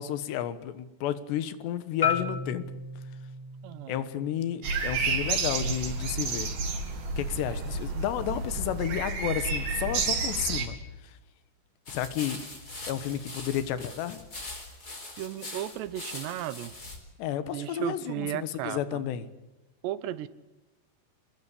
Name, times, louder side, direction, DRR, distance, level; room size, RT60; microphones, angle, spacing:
voice 1, 0.0-2.6 3.9-6.5 7.2-10.8 11.0-11.2 11.9-12.4 12.9-14.2 17.2-19.3, left 10 dB, 80° left, 13 dB, 3.5 m, -32 dB
Marimba xylophone, 2.0-6.2, left 6 dB, 45° left, 0.7 m, -35 dB
voice 2, 3.6-4.0 15.2-16.7 17.5-19.0 19.8-20.3, right 12 dB, 80° right, 15 dB, 3.2 m, -35 dB
sound 1, 4.6-10.7, right 4 dB, 60° right, 4.7 m, -30 dB
sound 2, 11.9-17.0, left 2 dB, 20° left, 4.3 m, -42 dB
26.5 x 20.0 x 8.4 m, 1.0 s
omnidirectional pair, 4.9 m